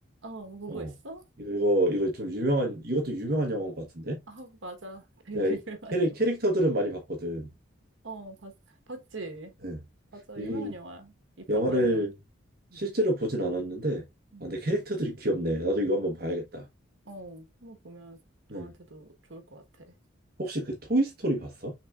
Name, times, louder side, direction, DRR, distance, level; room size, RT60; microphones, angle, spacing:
voice 1, 0.2-1.2 4.3-6.1 8.0-8.5 8.9-9.5 10.1-12.1 12.7-12.8 14.3-14.4 17.0-18.2 18.5-20.0, right 2 dB, 70° right, 1.2 m, -42 dB
voice 2, 1.4-4.2 5.3-5.6 5.9-7.5 9.6-9.8 10.4-10.7 11.5-12.1 12.7-14.0 14.4-16.7 18.5-18.7 20.4-21.7, right 1 dB, 45° right, 1.0 m, -28 dB
5.9 x 3.4 x 2.4 m
head